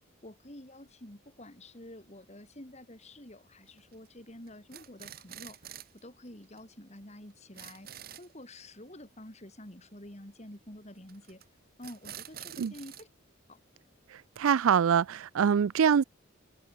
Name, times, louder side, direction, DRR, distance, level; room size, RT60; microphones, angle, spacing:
voice 1, 0.2-5.6 5.9-11.4 11.8-13.1 13.5-13.6, left 1 dB, 30° left, 3.4 m, -49 dB
sound 1, 3.7-4.1 4.5-6.0 6.3-6.4 6.6-6.7 7.0-7.1 7.3-8.3 11.1-11.5 11.8-13.0, right 10 dB, 45° right, 2.0 m, -47 dB
voice 2, 14.1-16.0, right 7 dB, 75° right, 0.4 m, -24 dB
head